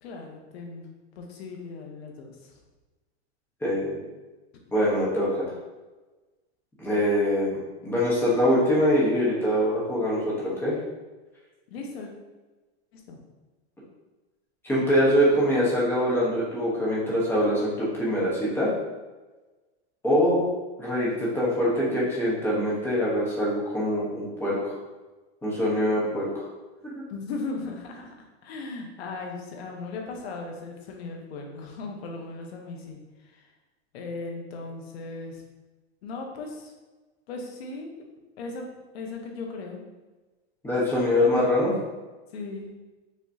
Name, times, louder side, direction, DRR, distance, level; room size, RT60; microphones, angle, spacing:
voice 1, 0.0-2.5 11.7-12.1 12.9-13.2 27.1-33.5 33.9-35.4 36.0-36.7 37.3-37.9 38.4-38.7 38.9-39.8 42.3-42.7, left 3 dB, 65° left, 2 dB, 1.0 m, -37 dB
voice 2, 3.6-4.0 4.7-5.5 6.8-10.7 14.6-18.7 20.0-20.4 20.8-24.7 25.4-26.4 26.8-27.0 40.6-41.7, equal, 5° left, -7 dB, 1.0 m, -24 dB
5.2 x 3.0 x 2.7 m, 1.2 s
supercardioid pair, 155°, 33 cm